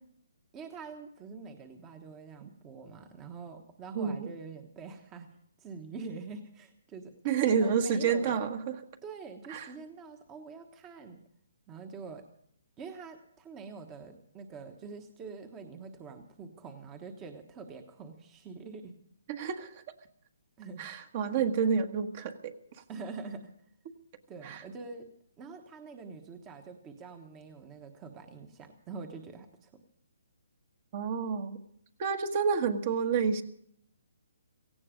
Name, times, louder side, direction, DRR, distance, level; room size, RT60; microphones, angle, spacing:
voice 1, 0.5-5.3 5.6-8.5 9.0-11.2 11.7-12.3 12.8-19.0 20.6-20.9 22.9-23.5 24.3-25.1 25.4-29.8, right 4 dB, 20° right, 6 dB, 1.2 m, -45 dB
voice 2, 3.9-4.3 7.2-8.6 9.5-9.7 19.3-19.8 20.8-22.5 24.4-24.6 30.9-31.6 32.0-33.4, right 6 dB, 35° right, 7 dB, 1.4 m, -29 dB
17.5 x 16.0 x 5.1 m, 0.68 s
hypercardioid pair, 160°, 0 cm